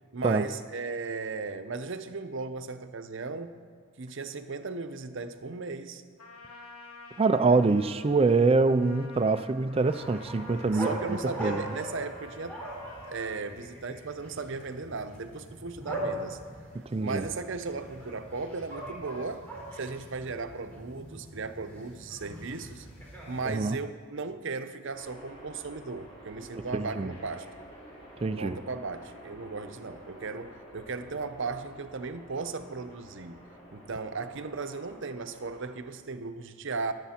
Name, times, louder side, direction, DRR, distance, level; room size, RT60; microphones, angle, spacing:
voice 1, 0.1-3.6 4.0-6.0 10.7-12.7 13.1-16.4 17.0-19.5 19.7-22.9 23.3-27.5 28.4-33.4 33.7-36.9, right 4 dB, 55° right, 9 dB, 0.7 m, -36 dB
Trumpet, 6.2-13.5, left 3 dB, 85° left, 1.6 m, -50 dB
voice 2, 7.2-11.6 16.9-17.2 23.5-23.8 26.7-27.1 28.2-28.6, right 3 dB, 25° right, 10 dB, 0.3 m, -25 dB
sound 1, 9.8-23.7, right 1 dB, 10° left, 3.5 m, -41 dB
sound 2, 24.9-35.7, right 1 dB, 25° left, 4.3 m, -50 dB
22.0 x 8.1 x 4.4 m, 2.1 s
head